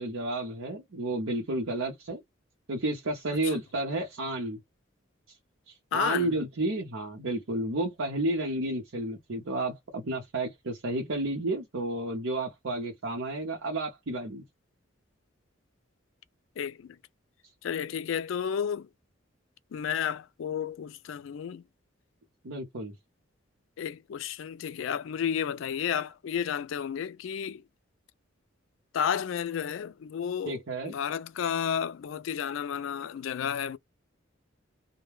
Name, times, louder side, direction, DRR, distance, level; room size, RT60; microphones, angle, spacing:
voice 1, 0.0-2.2 2.7-4.6 5.7-14.4 22.4-22.9 30.5-30.9, right 2 dB, 90° right, 0.8 m, -31 dB
voice 2, 5.9-6.3 16.6-17.0 17.6-18.9 19.7-21.6 23.8-27.6 28.9-33.8, left 8 dB, 70° left, 0.3 m, -32 dB
2.2 x 2.1 x 3.0 m
head